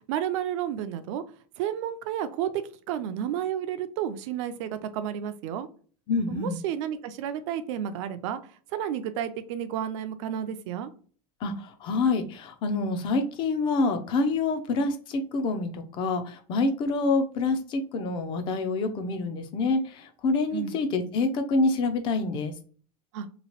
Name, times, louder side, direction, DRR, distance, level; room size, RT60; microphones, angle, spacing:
voice 1, 0.1-1.2 1.6-5.7 6.3-8.4 8.7-10.9 20.5-20.7 23.1-23.3, right 9 dB, 50° right, 11 dB, 0.4 m, -31 dB
voice 2, 6.1-6.6 11.4-22.5, left 3 dB, 25° left, 7 dB, 0.4 m, -27 dB
3.0 x 2.7 x 2.9 m, 0.43 s
supercardioid pair, 160°, 20 cm